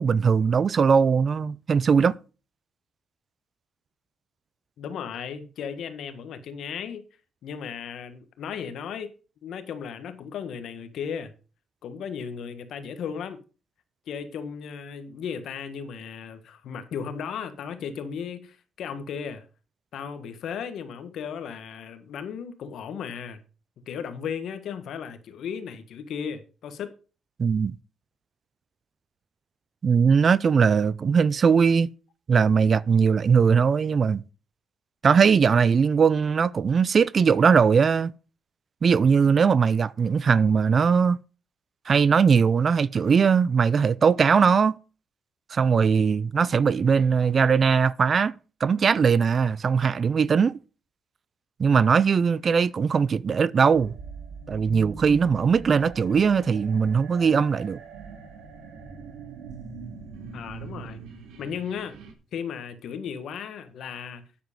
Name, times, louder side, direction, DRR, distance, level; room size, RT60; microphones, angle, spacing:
voice 1, 0.0-2.2 27.4-27.8 29.8-31.9 32.3-34.2 35.0-38.1 38.8-41.2 41.9-44.8 45.5-48.3 48.6-50.6 51.6-53.9 54.5-57.8, right 6 dB, 45° right, 0.4 m, -20 dB
voice 2, 4.8-7.0 7.4-9.1 9.4-11.3 11.8-13.4 14.1-19.4 19.9-23.4 23.9-26.9 60.3-61.0 61.4-61.9 62.3-64.3, left 7 dB, 70° left, 1.5 m, -35 dB
sound 1, 53.7-62.1, right 5 dB, 85° right, 2.2 m, -41 dB
9.4 x 7.3 x 5.3 m
cardioid pair, 90°, 0 cm